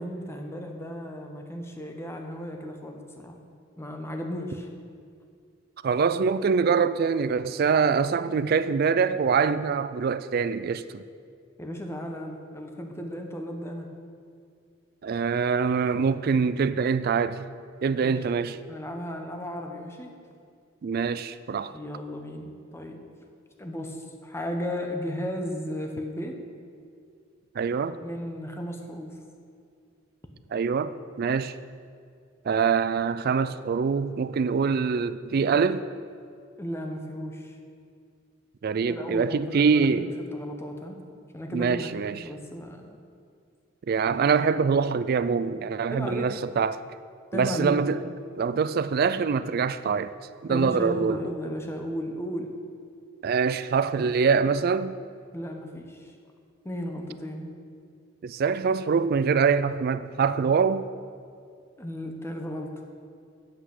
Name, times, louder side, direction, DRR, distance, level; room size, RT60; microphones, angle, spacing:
voice 1, 0.0-3.4 3.8-4.7 11.6-13.9 18.0-18.2 18.7-20.1 21.7-23.0 23.6-26.4 28.0-29.2 36.6-37.6 38.9-40.0 40.3-41.0 41.3-43.0 45.9-46.4 47.3-47.8 50.5-52.5 55.3-56.1 56.6-57.5 61.8-62.7, equal, 15° left, 0.9 m, -35 dB
voice 2, 5.8-11.0 15.0-17.4 17.8-18.6 20.8-21.7 27.6-28.0 30.5-31.6 32.4-35.9 38.6-40.1 41.5-42.2 43.9-46.8 47.3-48.0 48.4-50.1 50.4-51.2 53.2-54.9 58.2-60.9, right 5 dB, 50° right, 0.3 m, -24 dB
8.1 x 8.0 x 6.1 m
head